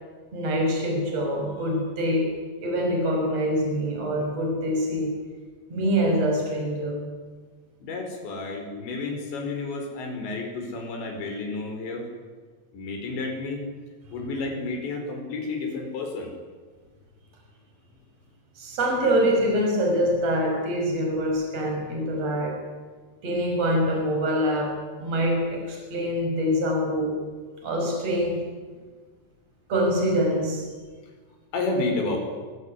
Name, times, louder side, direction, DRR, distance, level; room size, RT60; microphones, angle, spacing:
voice 1, 0.3-2.3 2.6-5.1 5.7-7.0 18.6-22.6 23.2-27.2 27.6-28.5 29.7-30.7, equal, 35° right, 1 dB, 6.9 m, -25 dB
voice 2, 7.8-12.1 12.7-13.6 14.1-16.3 31.5-32.2, left 3 dB, 90° left, 3 dB, 7.3 m, -31 dB
25.5 x 21.5 x 9.9 m, 1.4 s
omnidirectional pair, 5.0 m